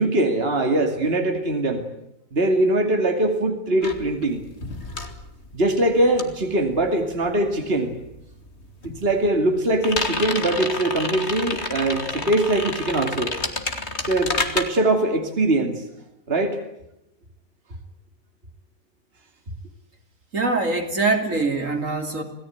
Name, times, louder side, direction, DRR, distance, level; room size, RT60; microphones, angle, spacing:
voice 1, 0.0-1.9 2.3-4.5 5.5-7.9 8.8-13.3 14.0-15.8 16.3-16.6, right 1 dB, 40° right, 4 dB, 2.8 m, -22 dB
sound 1, 3.8-7.6 7.9-14.6, left 3 dB, 45° left, 2.8 m, -30 dB
voice 2, 20.3-22.2, right 3 dB, 60° right, 5 dB, 3.4 m, -23 dB
27.5 x 18.0 x 9.4 m, 0.85 s
omnidirectional pair, 1.5 m